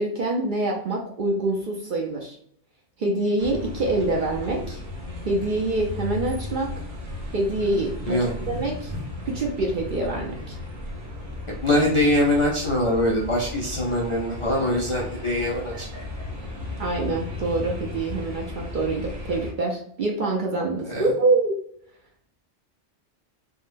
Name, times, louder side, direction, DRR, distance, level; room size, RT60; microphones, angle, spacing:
voice 1, 0.0-2.4 3.0-4.8 5.2-6.7 7.3-8.9 9.2-10.6 16.8-21.6, right 2 dB, 60° right, 0 dB, 0.6 m, -25 dB
sound 1, 3.4-19.5, left 2 dB, 75° right, 1.2 m, -35 dB
voice 2, 11.5-15.9 20.9-21.1, left 1 dB, 50° left, -4 dB, 0.4 m, -23 dB
3.7 x 2.1 x 2.5 m, 0.68 s
omnidirectional pair, 1.2 m